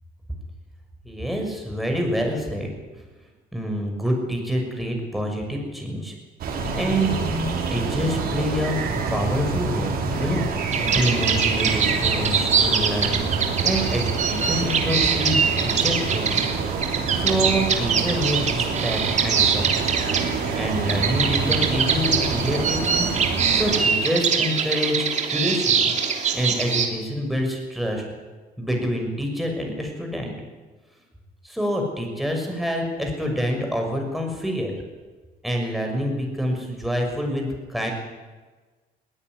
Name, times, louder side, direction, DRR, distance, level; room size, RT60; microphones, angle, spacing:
voice 1, 1.0-3.0 3.5-6.1 6.7-7.2 7.7-8.8 9.1-13.3 13.6-16.5 17.1-20.0 20.5-23.1 23.5-26.0 26.3-28.0 28.6-30.3 31.4-34.7 35.4-37.9, equal, ahead, 1 dB, 6.4 m, -27 dB
sound 1, 6.4-23.9, right 4 dB, 65° right, 5.3 m, -27 dB
sound 2, 10.7-26.9, right 6 dB, 45° right, 3.2 m, -24 dB
20.5 x 16.5 x 9.9 m, 1.3 s
cardioid pair, 110°, 17 cm